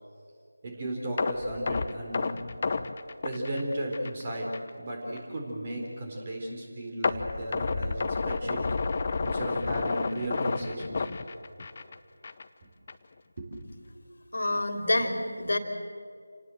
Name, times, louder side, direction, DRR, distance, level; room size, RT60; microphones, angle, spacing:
voice 1, 0.6-2.4 3.2-4.5 4.8-8.6 9.2-11.1 12.6-12.7 13.4-13.7, right 1 dB, 30° right, -1 dB, 4.0 m, -34 dB
sound 1, 1.2-4.2 4.5-4.7 5.2-5.3 7.0-11.9 12.2-12.4 12.9-13.0, left 4 dB, 35° left, 1.0 m, -31 dB
voice 2, 14.3-15.6, left 2 dB, 60° left, 6 dB, 3.0 m, -27 dB
28.0 x 19.0 x 7.8 m, 2.3 s
figure-of-eight pair, 165°, 0 cm